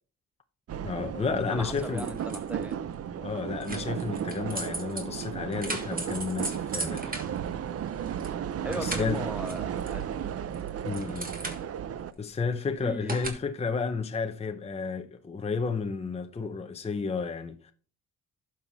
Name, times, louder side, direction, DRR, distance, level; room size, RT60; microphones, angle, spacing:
sound 1, 0.7-12.1, right 9 dB, 50° right, 0.7 m, -34 dB
voice 1, 0.8-2.1 3.2-7.2 8.7-9.2 10.8-11.4 12.2-17.7, left 5 dB, 20° left, 0.8 m, -32 dB
voice 2, 1.5-2.8 8.6-10.2 12.6-13.2, right 1 dB, 5° right, 1.4 m, -38 dB
sound 2, 1.7-2.7 3.6-8.3 8.6-10.2 10.5-11.9 13.1-13.3, right 2 dB, 30° right, 2.5 m, -38 dB
11.5 x 6.4 x 4.1 m
cardioid pair, 90°, 30 cm